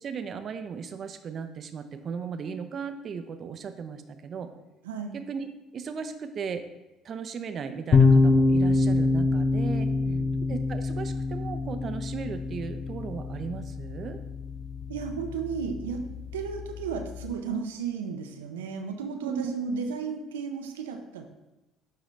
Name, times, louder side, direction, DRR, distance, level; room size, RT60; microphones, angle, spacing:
voice 1, 0.0-4.5 5.1-5.5 5.7-6.6 7.0-9.9 10.5-14.2 19.2-19.4, right 6 dB, 50° right, 9 dB, 0.6 m, -36 dB
voice 2, 4.8-5.2 9.8-10.4 14.9-16.0 16.3-21.2, right 5 dB, 90° right, 5 dB, 0.6 m, -34 dB
sound 1, 7.9-17.3, left 3 dB, 45° left, 0.5 m, -26 dB
10.0 x 3.8 x 3.2 m, 0.99 s
hypercardioid pair, 65°, 0 cm